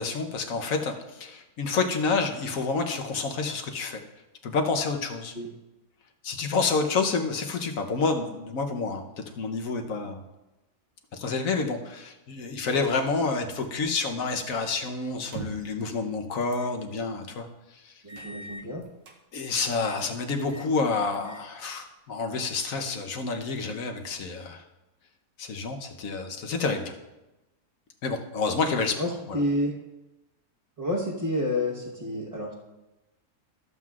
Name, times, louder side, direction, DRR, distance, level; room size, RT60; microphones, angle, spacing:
voice 1, 0.0-4.0 4.4-5.3 6.2-10.2 11.1-17.5 17.7-17.9 19.3-24.6 25.4-26.9 28.0-29.0 29.3-29.4, left 4 dB, 65° left, 4 dB, 1.2 m, -29 dB
sound 1, 15.2-15.8 16.5-16.7 17.1-17.2 18.1-19.2 19.7-20.1 20.4-20.7 21.1-21.5 21.8-21.9 22.4-23.1, right 3 dB, 65° right, 1.2 m, -43 dB
voice 2, 18.0-18.8 28.9-29.7 30.8-32.5, left 1 dB, 25° right, -7 dB, 1.1 m, -29 dB
14.0 x 7.5 x 2.4 m, 1.0 s
omnidirectional pair, 1.6 m